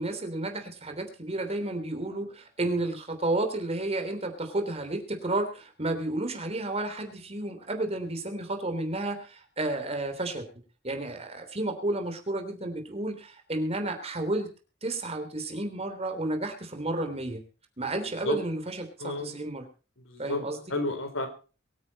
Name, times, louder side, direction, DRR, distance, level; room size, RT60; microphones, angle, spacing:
voice 1, 0.0-10.5 10.8-14.5 14.8-17.4 17.8-19.6 20.2-20.6, right 2 dB, 35° right, 5 dB, 3.3 m, -32 dB
voice 2, 19.0-19.3 20.1-20.4 20.7-21.3, left 2 dB, 90° left, 7 dB, 3.8 m, -30 dB
23.0 x 9.6 x 4.2 m, 0.35 s
head